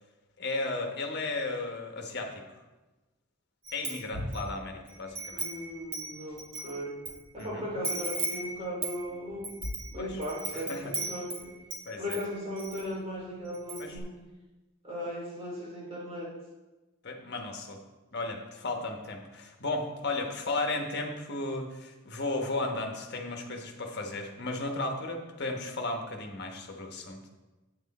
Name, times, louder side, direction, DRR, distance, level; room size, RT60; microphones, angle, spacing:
voice 1, 0.4-2.4 3.7-5.4 7.4-7.7 10.0-10.2 10.5-10.9 11.9-12.2 13.8-14.0 17.0-17.8 18.1-27.3, left 2 dB, 50° left, 3 dB, 1.2 m, -34 dB
Wind chime, 3.7-4.5 4.9-7.1 7.4-7.5 7.8-11.8 12.1-12.8 13.2-13.3 13.5-14.0, right 2 dB, 90° right, 2.2 m, -36 dB
voice 2, 5.3-7.0 7.3-9.6 9.9-11.5 12.0-14.1 14.8-16.3, equal, 30° right, -6 dB, 3.7 m, -37 dB
8.9 x 8.2 x 4.2 m, 1.1 s
head